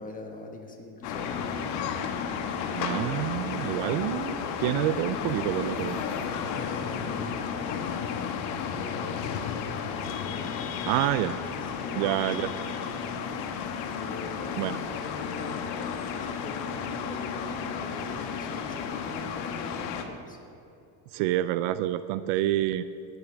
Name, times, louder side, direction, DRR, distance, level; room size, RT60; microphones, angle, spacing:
voice 1, 0.0-1.5 6.4-7.5 8.6-9.4 11.6-12.5 13.9-20.4, left 2 dB, 15° left, 3 dB, 1.4 m, -43 dB
sound 1, 1.0-20.0, left 7 dB, 85° left, 1.5 m, -33 dB
voice 2, 2.8-6.0 10.9-11.3 12.0-12.5 14.6-14.8 21.1-22.8, right 14 dB, 60° right, 13 dB, 0.5 m, -27 dB
19.5 x 11.5 x 3.4 m, 2.7 s
cardioid pair, 150°, 50 cm